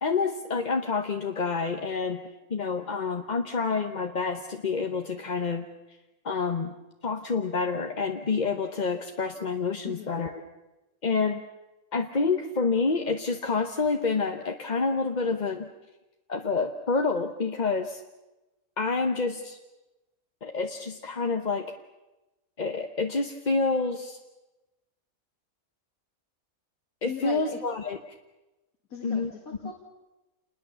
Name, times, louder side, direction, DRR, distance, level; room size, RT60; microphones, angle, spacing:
voice 1, 0.0-2.2 2.5-5.7 6.2-6.7 7.0-10.4 11.0-11.4 11.9-15.7 16.3-18.0 18.8-19.6 20.4-21.7 22.6-24.2 27.0-28.0 29.0-29.3 29.6-29.7, left 4 dB, 35° left, 5 dB, 1.0 m, -28 dB
voice 2, 9.8-10.2 27.1-27.6 28.9-29.7, left 5 dB, 85° left, 0 dB, 2.7 m, -38 dB
28.5 x 20.5 x 6.9 m, 1.1 s
omnidirectional pair, 1.5 m